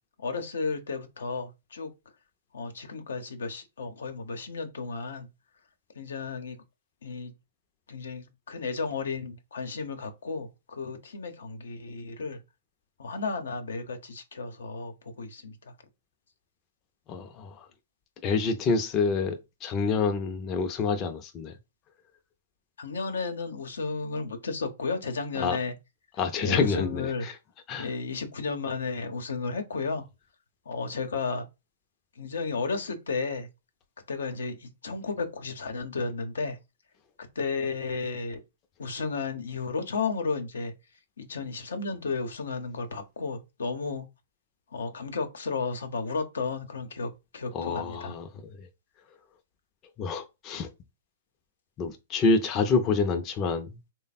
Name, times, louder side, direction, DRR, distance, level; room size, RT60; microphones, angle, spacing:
voice 1, 0.2-1.9 2.5-5.3 5.9-6.6 7.0-7.3 7.9-12.4 13.0-15.7 22.8-25.7 26.4-27.3 27.8-30.1 30.7-31.4 32.2-33.5 34.1-36.6 37.2-38.4 38.8-40.7 41.2-44.0 44.7-48.1, left 4 dB, 85° left, 0.8 m, -33 dB
voice 2, 17.1-17.6 18.2-21.5 25.4-25.6 26.2-27.1 27.7-27.9 47.5-48.3 50.0-50.7 51.8-53.7, left 4 dB, 30° left, 0.5 m, -27 dB
3.3 x 2.1 x 4.1 m
hypercardioid pair, 135°, 0 cm